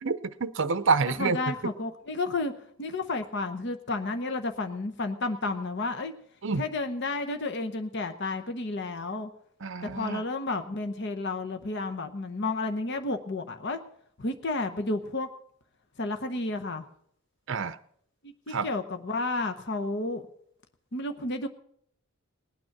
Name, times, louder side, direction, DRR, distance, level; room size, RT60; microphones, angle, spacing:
voice 1, 0.0-1.5 6.4-6.6 9.6-10.2 17.5-17.8 18.5-18.7, right 4 dB, 55° right, 13 dB, 0.6 m, -28 dB
voice 2, 1.2-2.5 2.8-6.1 6.6-9.3 9.8-13.8 14.2-15.3 16.0-16.9 18.2-20.2 20.9-21.5, left 2 dB, 50° left, 7 dB, 0.9 m, -31 dB
20.0 x 9.1 x 6.0 m, 0.67 s
head